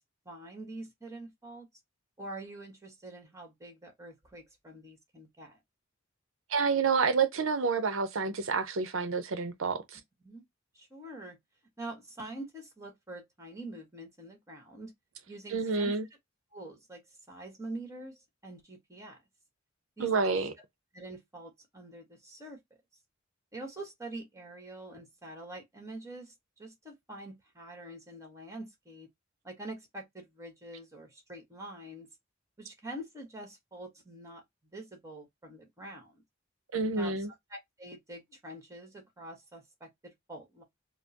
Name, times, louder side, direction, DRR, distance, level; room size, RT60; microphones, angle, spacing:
voice 1, 0.2-1.7 2.2-5.6 10.2-10.4 10.7-11.4 11.8-14.9 15.3-15.9 16.5-17.0 17.3-18.2 18.4-19.2 20.0-20.5 20.9-22.6 23.5-26.3 26.6-29.1 29.4-32.1 32.6-34.4 34.7-36.2 37.0-37.2 37.5-40.6, right 1 dB, 15° right, 1.6 m, -45 dB
voice 2, 6.5-10.0 15.5-16.1 20.0-20.5 36.7-37.3, right 4 dB, 70° right, 0.7 m, -29 dB
4.3 x 2.1 x 2.8 m
head